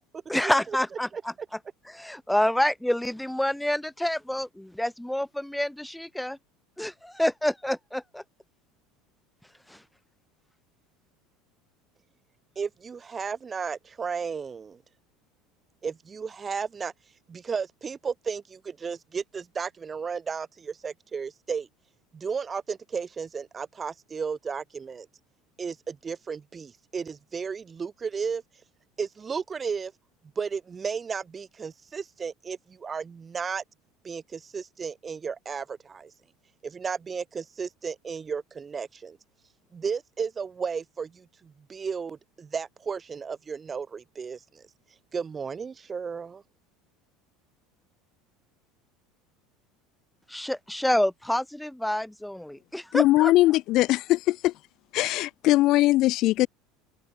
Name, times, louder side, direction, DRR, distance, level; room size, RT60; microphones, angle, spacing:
voice 1, 0.3-1.1 1.9-6.4 6.8-8.2 9.7-9.8 50.3-53.3, left 1 dB, 5° left, 3.2 m, -27 dB
voice 2, 12.6-14.8 15.8-16.9 17.3-21.7 22.1-25.1 25.6-28.4 29.0-29.9 30.4-33.6 34.0-36.1 36.6-39.2 39.7-44.6 45.1-46.4, right 6 dB, 25° right, 1.9 m, -34 dB
voice 3, 52.9-54.5 54.9-56.5, left 17 dB, 50° left, 1.1 m, -21 dB
figure-of-eight pair, 75°, 0 cm